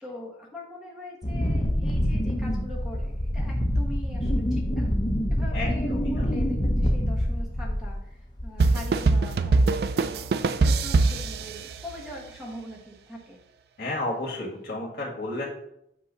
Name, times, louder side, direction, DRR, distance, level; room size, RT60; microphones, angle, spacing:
voice 1, 0.0-4.9 5.3-13.4, left 1 dB, 5° right, -3 dB, 1.1 m, -42 dB
Wind, 1.2-8.1 8.4-8.8, equal, 25° left, 0.7 m, -26 dB
voice 2, 5.5-6.3 13.8-15.5, left 2 dB, 55° left, -3 dB, 2.1 m, -32 dB
sound 1, 8.6-12.2, right 3 dB, 65° right, 0.3 m, -23 dB
8.2 x 2.8 x 5.4 m, 0.78 s
head